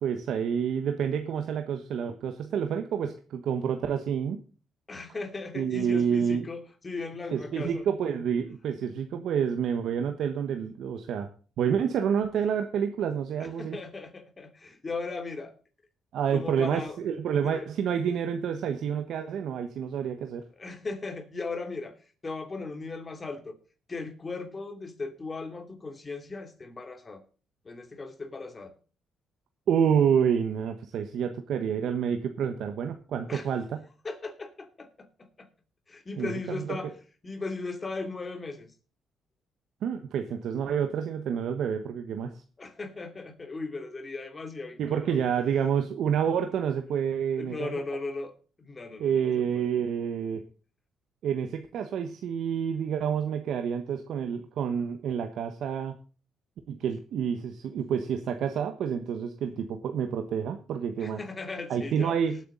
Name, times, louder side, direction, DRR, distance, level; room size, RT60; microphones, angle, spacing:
voice 1, 0.0-4.4 5.5-6.5 7.3-11.3 11.6-13.8 16.1-20.4 29.7-33.8 36.2-36.8 39.8-42.3 44.8-47.8 49.0-50.4 51.2-55.9 56.7-61.2 61.7-62.4, right 7 dB, 75° right, 7 dB, 1.2 m, -28 dB
voice 2, 4.9-7.9 13.4-15.5 16.3-17.0 17.4-17.7 20.6-21.9 22.2-23.5 23.9-27.2 27.6-28.7 33.3-33.5 34.0-35.1 35.4-35.5 35.9-36.9 37.2-38.7 42.6-45.2 47.4-48.3 48.6-49.6 61.0-62.2, left 3 dB, 30° left, 8 dB, 2.7 m, -37 dB
18.5 x 8.3 x 3.9 m, 0.38 s
cardioid pair, 90°, 0 cm